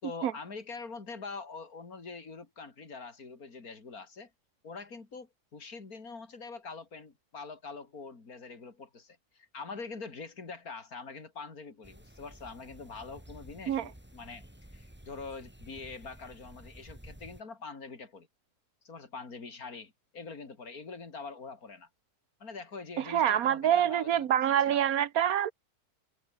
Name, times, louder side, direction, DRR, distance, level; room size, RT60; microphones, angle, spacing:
voice 1, 0.0-4.3 4.6-18.3 18.8-21.9 22.4-24.8, left 4 dB, 70° left, 3.7 m, -44 dB
sound 1, 11.8-17.4, right 1 dB, 5° right, 2.9 m, -52 dB
voice 2, 23.0-25.5, right 10 dB, 70° right, 1.3 m, -26 dB
omnidirectional pair, 1.6 m